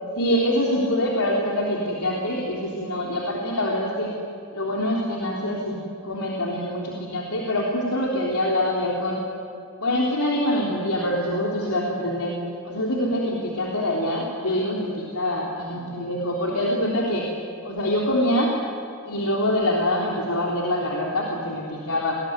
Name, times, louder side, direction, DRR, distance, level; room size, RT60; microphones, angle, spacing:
voice 1, 0.2-4.1 4.5-5.8 6.0-9.2 9.8-12.3 12.6-17.3 17.6-18.5 19.0-22.1, left 1 dB, 85° left, -2 dB, 3.6 m, -25 dB
27.5 x 21.5 x 9.7 m, 2.4 s
head